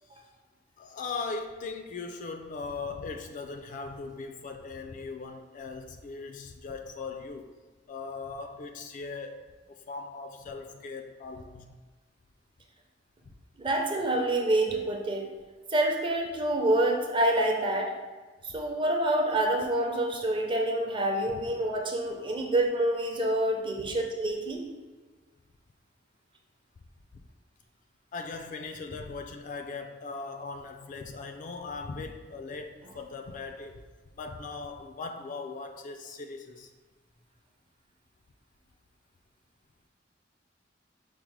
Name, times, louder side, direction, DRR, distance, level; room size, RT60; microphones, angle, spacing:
voice 1, 0.8-7.5 7.9-11.8 13.2-13.3 23.8-23.9 28.1-33.8 34.1-36.7, left 4 dB, 45° left, 5 dB, 0.3 m, -39 dB
voice 2, 13.6-15.2 15.7-17.9 18.4-24.6, right 1 dB, 25° right, 1 dB, 0.6 m, -27 dB
5.1 x 2.0 x 4.6 m, 1.4 s
head